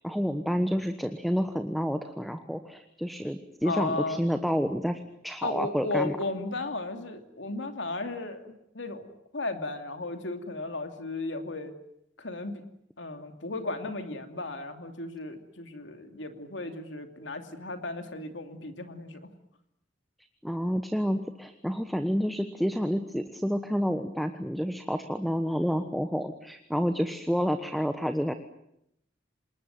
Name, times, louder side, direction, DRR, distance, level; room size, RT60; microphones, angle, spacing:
voice 1, 0.0-6.2 20.4-28.3, equal, ahead, 8 dB, 1.2 m, -29 dB
voice 2, 3.6-4.2 5.4-11.7 12.2-12.6 13.0-19.3, left 2 dB, 90° left, 7 dB, 2.8 m, -35 dB
27.5 x 20.5 x 9.3 m, 0.78 s
head